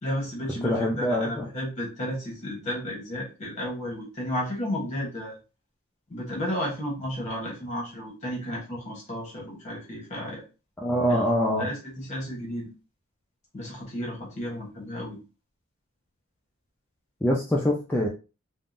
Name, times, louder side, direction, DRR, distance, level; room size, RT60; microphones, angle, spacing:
voice 1, 0.0-5.4 6.1-10.4 11.1-11.2 11.6-12.7 13.5-15.2, equal, 35° left, -2 dB, 0.9 m, -33 dB
voice 2, 0.6-1.4 10.8-11.7 17.2-18.1, equal, 10° left, -2 dB, 0.3 m, -24 dB
3.5 x 2.0 x 2.5 m, 0.31 s
head